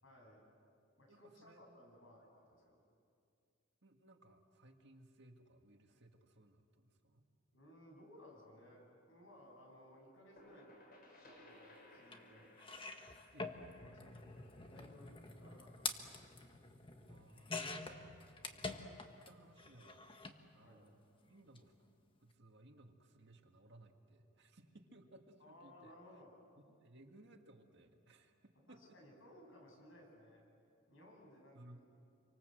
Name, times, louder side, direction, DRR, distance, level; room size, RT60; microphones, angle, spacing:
voice 1, 0.0-0.4 1.0-2.8 7.5-10.7 11.2-12.5 13.4-14.3 14.7-16.2 20.6-20.8 25.4-26.3 28.7-30.4 30.9-31.8, left 1 dB, 70° left, 0 dB, 7.8 m, -60 dB
voice 2, 1.1-1.6 3.8-7.2 13.3-13.6 17.1-20.1 20.5-21.7 22.2-26.0 26.6-29.0 31.5-31.8, right 1 dB, 55° right, 4 dB, 2.0 m, -62 dB
sound 1, 9.9-15.5, left 1 dB, 45° left, 6.2 m, -62 dB
sound 2, 12.1-12.2 12.6-19.3 19.6-20.4 21.4-21.6 21.8-21.9, left 4 dB, 25° left, 1.4 m, -47 dB
27.5 x 25.0 x 7.8 m, 2.4 s
head